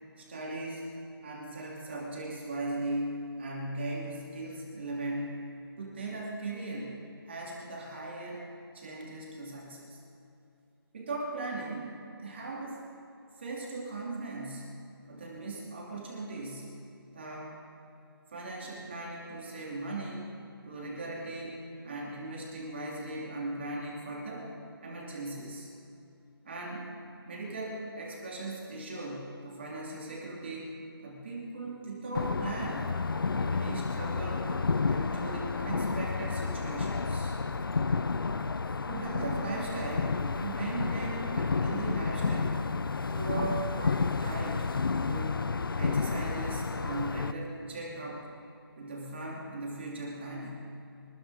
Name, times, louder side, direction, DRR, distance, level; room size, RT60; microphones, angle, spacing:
voice 1, 0.2-0.9 1.2-5.3 5.8-6.9 7.3-8.5 8.7-10.0 10.9-12.9 13.4-14.7 15.1-16.7 17.1-17.6 18.3-24.5 24.8-25.7 26.4-26.9 27.3-30.7 31.0-32.9 33.3-34.5 34.9-37.4 38.9-42.7 43.1-44.7 45.1-45.4 45.7-48.3 48.8-50.7, right 2 dB, 30° right, -4 dB, 2.7 m, -38 dB
sound 1, 32.1-47.3, left 4 dB, 65° left, 0.7 m, -31 dB
24.5 x 13.5 x 4.2 m, 2.7 s
hypercardioid pair, 175°, 13 cm